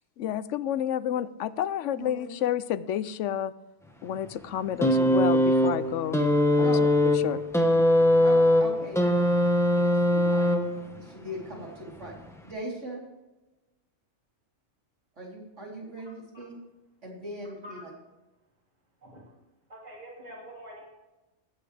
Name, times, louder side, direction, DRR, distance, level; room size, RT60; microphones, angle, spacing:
voice 1, 0.2-3.5 4.0-6.2 6.6-6.8 7.1-7.4, left 10 dB, 80° left, 16 dB, 0.9 m, -30 dB
voice 2, 1.9-2.3 6.6-6.8 8.2-9.0 9.6-10.5 11.0-12.1 12.4-13.0 15.2-16.5 17.0-17.9, equal, 75° right, -3 dB, 4.0 m, -39 dB
sound 1, 4.8-11.0 12.0-12.1, left 1 dB, ahead, 1.0 m, -21 dB
voice 3, 19.7-20.9, equal, 35° right, -4 dB, 3.0 m, -45 dB
19.0 x 8.4 x 3.4 m, 1.1 s
omnidirectional pair, 1.2 m